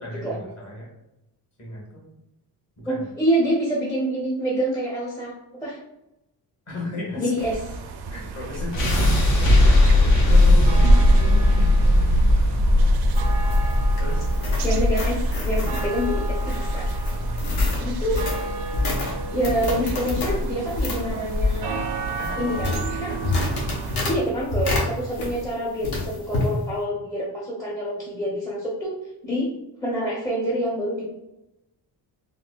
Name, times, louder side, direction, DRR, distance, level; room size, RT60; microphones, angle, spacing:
voice 1, 0.0-0.9 1.6-2.0 2.8-3.1 6.7-7.3 8.1-9.1 9.6-11.7 14.0-14.8 17.1-18.2 22.2-22.6 23.1-23.3 25.1-25.4, left 2 dB, 40° left, -3 dB, 1.3 m, -36 dB
voice 2, 2.9-5.3 5.6-5.8 7.2-7.6 14.6-16.9 17.8-18.2 19.3-21.8 22.4-23.1 24.1-28.9 29.2-29.5 29.8-31.1, equal, 10° left, -6 dB, 0.6 m, -26 dB
sound 1, 7.4-24.0, right 3 dB, 70° right, 0.5 m, -29 dB
sound 2, 8.7-20.8, left 1 dB, 90° left, 1.1 m, -20 dB
sound 3, 12.9-25.5 25.8-26.5, left 2 dB, 65° left, 0.9 m, -28 dB
3.7 x 2.1 x 2.3 m, 0.89 s
cardioid pair, 110°, 40 cm